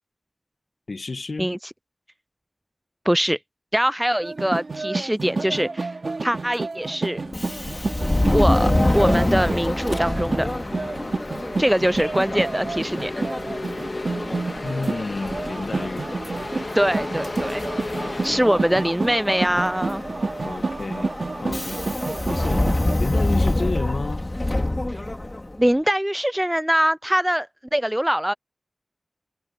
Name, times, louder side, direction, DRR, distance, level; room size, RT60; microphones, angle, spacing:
voice 1, 0.9-1.5 14.6-16.1 18.3-18.7 20.4-21.1 21.4-21.8 22.3-24.2, left 3 dB, 75° left, 1.4 m, -31 dB
voice 2, 3.1-3.4 3.7-5.9 6.2-7.2 8.3-10.5 11.6-13.2 16.7-17.6 18.0-20.1 25.6-28.3, equal, 10° right, 0.4 m, -23 dB
sound 1, 4.2-22.9, right 3 dB, 75° right, 2.6 m, -30 dB
Subway metro underground, 7.3-25.6, left 1 dB, 35° left, 2.5 m, -26 dB
sound 2, 8.0-18.4, left 2 dB, 60° left, 2.4 m, -36 dB
wide cardioid pair, 50°, 0 cm